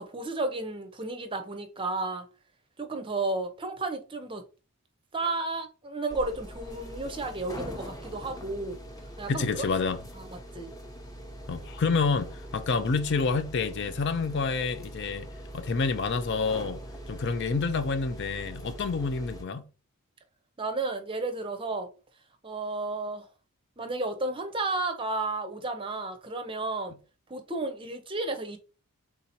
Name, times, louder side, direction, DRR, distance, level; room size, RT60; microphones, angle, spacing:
voice 1, 0.0-2.3 2.8-4.4 5.1-8.8 9.2-9.7 10.2-10.7 20.6-21.9 22.4-23.2 23.8-26.9 27.3-28.6, right 2 dB, 25° right, 0.6 m, -32 dB
sound 1, 6.1-19.4, equal, 15° left, 0.7 m, -42 dB
voice 2, 9.3-10.0 11.5-16.8 17.1-19.7, left 4 dB, 50° left, 0.4 m, -28 dB
3.7 x 2.8 x 4.2 m
head